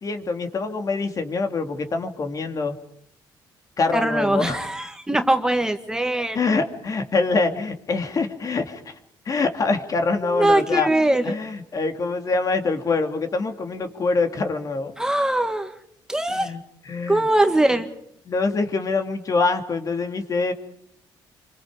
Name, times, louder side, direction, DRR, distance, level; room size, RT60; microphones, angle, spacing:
voice 1, 0.0-2.7 3.8-4.6 6.3-8.9 9.3-10.9 11.2-14.9 16.3-16.6 16.9-17.3 18.3-20.5, left 3 dB, 45° left, 6 dB, 2.7 m, -24 dB
voice 2, 3.9-6.4 10.3-11.4 15.0-15.7 16.1-16.5 17.1-17.9, right 1 dB, 10° right, 6 dB, 1.9 m, -21 dB
28.0 x 25.0 x 5.1 m, 0.67 s
cardioid pair, 90°, 8 cm